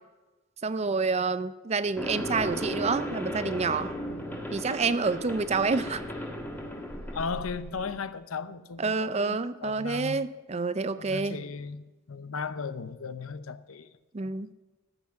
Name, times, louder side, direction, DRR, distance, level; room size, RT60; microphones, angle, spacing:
voice 1, 0.6-3.9 4.5-6.0 8.8-11.4 14.1-14.5, right 4 dB, 30° right, 0.5 m, -28 dB
sound 1, 2.0-8.0, equal, 10° left, 1.4 m, -36 dB
voice 2, 7.1-10.3 11.0-11.8 12.1-14.5, left 5 dB, 85° left, 0.7 m, -36 dB
13.5 x 5.9 x 7.6 m
head